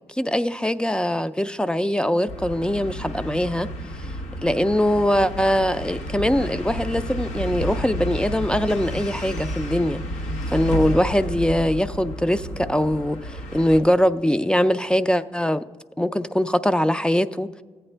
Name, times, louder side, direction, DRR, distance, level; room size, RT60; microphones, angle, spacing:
voice 1, 0.1-3.7 4.4-10.0 10.5-15.6 16.0-17.5, equal, 5° left, 13 dB, 0.3 m, -22 dB
sound 1, 2.3-13.8, equal, 85° left, 0.9 m, -31 dB
14.5 x 8.8 x 3.3 m, 1.5 s
cardioid pair, 80°, 12 cm